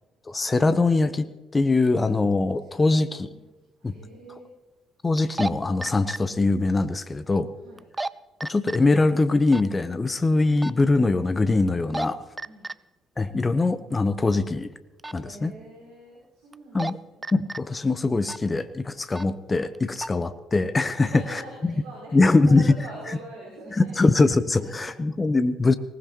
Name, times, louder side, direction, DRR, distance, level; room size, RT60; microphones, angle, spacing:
voice 1, 0.3-3.3 3.8-3.9 5.0-7.5 8.4-12.2 13.2-14.7 15.1-15.5 16.7-17.0 17.3-21.1 22.1-22.7 23.8-25.7, left 3 dB, 25° left, 13 dB, 0.9 m, -22 dB
voice 2, 2.5-3.5 3.8-4.5 7.6-7.8 12.4-12.7 15.1-16.8 17.2-17.3 20.1-20.3 20.9-22.1 22.5-24.3 24.6-24.9, right 2 dB, 70° right, -4 dB, 5.2 m, -44 dB
sound 1, 3.1-3.2 5.2-5.5 5.8-6.2 7.8-8.1 8.4-8.8 9.5-9.7 10.6-10.8 11.7-12.1 12.4-12.7 15.0-15.2 16.5-16.9 17.2-17.6 18.2-18.5 19.1-19.3 19.7-20.1, right 2 dB, 20° right, 0.5 m, -31 dB
20.0 x 19.0 x 3.1 m, 1.1 s
figure-of-eight pair, 50°, 0 cm